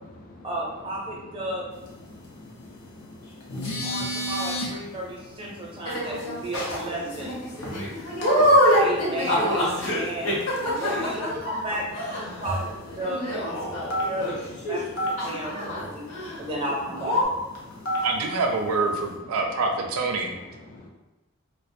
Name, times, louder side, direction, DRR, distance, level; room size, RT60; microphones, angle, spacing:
voice 1, 0.4-1.7 3.8-7.4 8.7-10.4 10.8-12.7 13.0-13.6 14.0-14.3 14.7-16.1 16.4-17.2, right 1 dB, 25° right, -3 dB, 0.6 m, -33 dB
voice 2, 2.1-4.3 4.8-6.1 7.5-8.8 10.2-10.8 11.4-11.6 12.3-12.4 13.6-14.1 14.7-14.9 15.2-15.6 16.0-16.5 17.2-17.3 17.6-18.0 20.2-20.9, left 2 dB, 40° left, 0 dB, 0.4 m, -46 dB
sound 1, 3.4-4.7 6.5-6.8 7.2-7.3 7.6-7.8 8.2-8.3 8.6-8.7 9.5-10.7 11.1-11.2 11.4-11.5 11.7-11.8 12.4-12.8 13.8-14.4 15.0-15.1 17.5-18.2, equal, 80° left, 0.6 m, -30 dB
sound 2, 5.8-6.4 6.9-14.9 15.2-15.8 16.1-16.4 16.6-16.7 17.0-17.2, equal, 65° left, 0.9 m, -25 dB
voice 3, 18.0-20.4, right 3 dB, 80° right, 3 dB, 0.4 m, -26 dB
2.4 x 2.0 x 2.6 m, 1.1 s
head